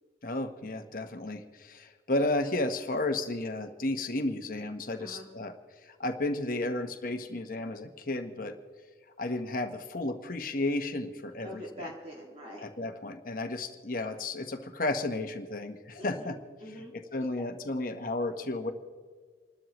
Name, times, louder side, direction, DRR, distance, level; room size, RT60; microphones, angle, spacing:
voice 1, 0.2-5.5 5.8-8.6 9.2-11.6 12.6-16.4 17.1-18.7, left 2 dB, 50° left, 6 dB, 1.1 m, -33 dB
voice 2, 11.4-12.6 16.0-16.3 16.6-16.9, equal, 35° right, -3 dB, 2.1 m, -43 dB
28.5 x 12.5 x 3.1 m, 1.5 s
head